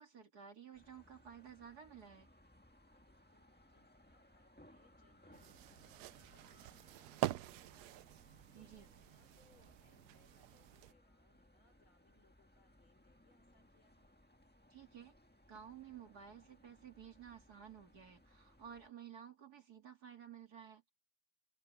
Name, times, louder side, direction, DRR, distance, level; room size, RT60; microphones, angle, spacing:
voice 1, 0.0-2.3 8.5-8.9 14.7-15.1 15.5-20.9, right 8 dB, 50° right, 2.5 m, -54 dB
sound 1, 0.7-18.9, left 1 dB, 5° left, 1.2 m, -66 dB
voice 2, 2.9-14.1, left 3 dB, 75° left, 5.5 m, -75 dB
sound 2, 5.3-10.9, right 15 dB, 85° right, 0.8 m, -45 dB
open air
omnidirectional pair, 2.3 m